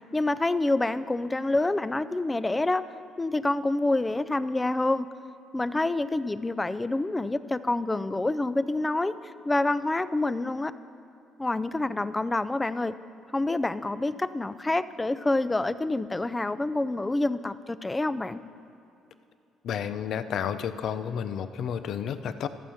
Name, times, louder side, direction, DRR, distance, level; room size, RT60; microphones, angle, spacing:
voice 1, 0.1-2.8 3.2-5.1 5.5-9.1 9.4-10.7 11.4-12.9 13.3-18.4, left 2 dB, 15° left, 14 dB, 0.4 m, -27 dB
voice 2, 19.6-22.5, left 8 dB, 65° left, 12 dB, 0.5 m, -31 dB
13.5 x 7.2 x 5.7 m, 2.7 s
supercardioid pair, 85°, 0 cm